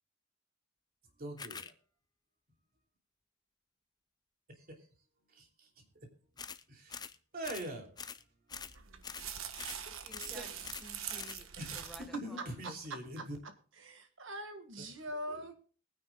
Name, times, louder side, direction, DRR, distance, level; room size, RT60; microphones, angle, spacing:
voice 1, 1.2-1.7 4.6-4.7 5.3-5.7 6.7-7.1 7.3-7.9 10.1-10.4 11.6-13.4 15.3-15.5, right 1 dB, 45° right, 3.0 m, -43 dB
sound 1, 1.4-1.7 6.4-6.6 6.9-7.2 7.4-7.7 8.0-8.2 8.5-8.8 9.0-9.3 9.6-9.8 10.1-10.4 10.6-10.9 11.2-11.4, left 6 dB, 20° left, 0.5 m, -45 dB
sound 2, 8.5-12.1, right 9 dB, 90° right, 1.2 m, -44 dB
voice 2, 9.9-12.8, equal, ahead, 1.4 m, -54 dB
voice 3, 12.4-15.5, right 1 dB, 65° right, 1.7 m, -44 dB
22.0 x 9.9 x 2.3 m
head